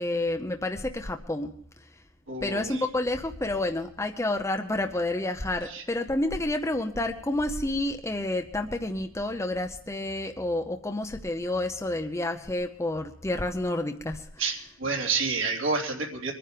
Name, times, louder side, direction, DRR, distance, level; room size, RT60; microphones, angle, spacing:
voice 1, 0.0-2.0 2.4-14.4, left 1 dB, 15° left, 5 dB, 0.7 m, -29 dB
voice 2, 2.3-2.8 5.7-5.8 14.4-16.3, right 4 dB, 75° right, 0 dB, 3.1 m, -29 dB
23.0 x 10.0 x 5.1 m, 0.66 s
head